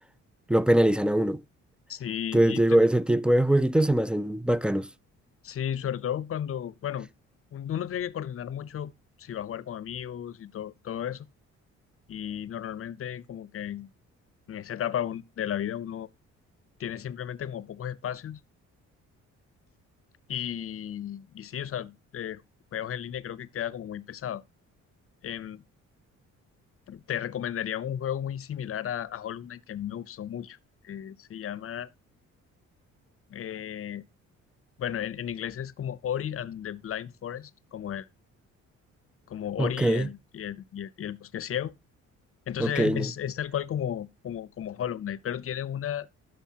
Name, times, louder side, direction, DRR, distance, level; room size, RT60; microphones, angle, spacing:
voice 1, 0.5-1.4 2.3-4.9 39.6-40.1 42.6-43.1, right 1 dB, 5° right, 0.4 m, -22 dB
voice 2, 1.9-2.8 5.4-7.1 7.5-8.9 9.2-11.3 12.1-13.9 14.5-16.1 16.8-18.4 20.3-22.4 22.7-24.4 25.2-25.6 26.9-30.6 30.8-31.9 33.3-34.0 34.8-38.1 39.3-41.7 42.5-46.1, left 10 dB, 50° left, 0.7 m, -34 dB
13.0 x 6.3 x 2.9 m
cardioid pair, 90°, 30 cm